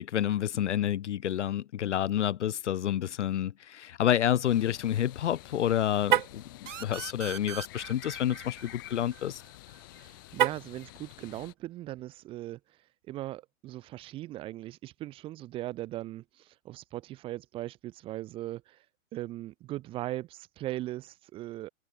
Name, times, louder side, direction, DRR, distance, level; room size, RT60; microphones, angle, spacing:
voice 1, 0.0-9.4, left 11 dB, 55° left, 0.9 m, -29 dB
sound 1, 4.4-11.5, left 20 dB, 15° left, 0.6 m, -49 dB
Car, 6.0-6.5 10.3-10.8, right 12 dB, 35° right, 0.7 m, -27 dB
sound 2, 6.7-10.1, right 10 dB, 60° right, 2.0 m, -43 dB
voice 2, 9.9-12.8 13.1-18.8 19.1-21.7, right 15 dB, 15° right, 1.0 m, -39 dB
hypercardioid pair, 160°, 41 cm